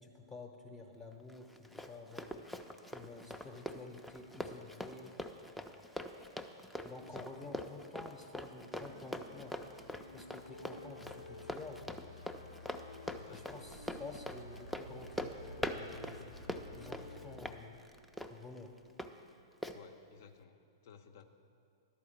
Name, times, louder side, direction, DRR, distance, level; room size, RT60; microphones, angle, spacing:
voice 1, 0.0-2.3 2.9-5.1 6.8-9.5 10.1-12.0 13.3-17.8 18.3-18.8, left 3 dB, 20° left, 1 dB, 0.8 m, -51 dB
Run, 1.3-19.1 19.6-19.8, left 1 dB, ahead, 0.4 m, -44 dB
voice 2, 7.0-7.5 13.1-13.7 19.7-20.6 20.8-21.2, left 7 dB, 55° left, 8 dB, 0.6 m, -56 dB
sound 1, 8.8-17.6, left 4 dB, 90° left, 0.8 m, -53 dB
sound 2, 11.8-18.9, right 4 dB, 70° right, 0.3 m, -56 dB
11.5 x 4.7 x 7.2 m, 2.4 s
figure-of-eight pair, 105°, 2 cm